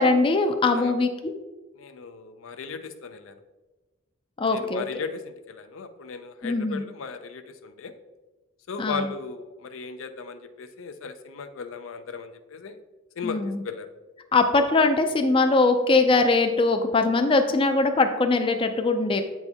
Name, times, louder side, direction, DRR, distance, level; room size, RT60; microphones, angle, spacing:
voice 1, 0.0-1.3 4.4-4.8 6.4-6.8 8.8-9.1 13.2-13.6 14.3-19.2, left 3 dB, 25° left, 7 dB, 0.4 m, -21 dB
voice 2, 1.8-3.4 4.5-7.9 8.7-12.8 13.2-13.9, left 5 dB, 80° left, 9 dB, 0.5 m, -36 dB
7.8 x 4.2 x 3.5 m, 1.2 s
head